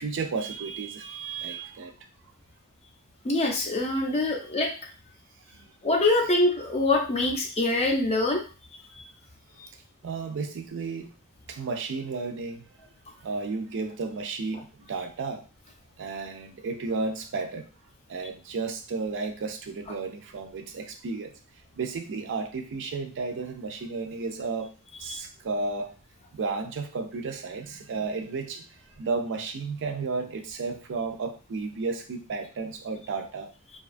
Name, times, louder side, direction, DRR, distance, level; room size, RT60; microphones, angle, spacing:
voice 1, 0.0-1.9 5.5-5.6 10.0-11.1 11.5-12.6 13.2-15.4 16.0-17.7 18.1-21.3 21.8-24.7 25.0-25.9 26.3-28.6 29.0-33.5, right 4 dB, 55° right, 5 dB, 0.5 m, -33 dB
voice 2, 3.2-4.7 5.8-8.4, left 2 dB, 30° left, 1 dB, 0.5 m, -24 dB
2.7 x 2.3 x 2.5 m, 0.35 s
head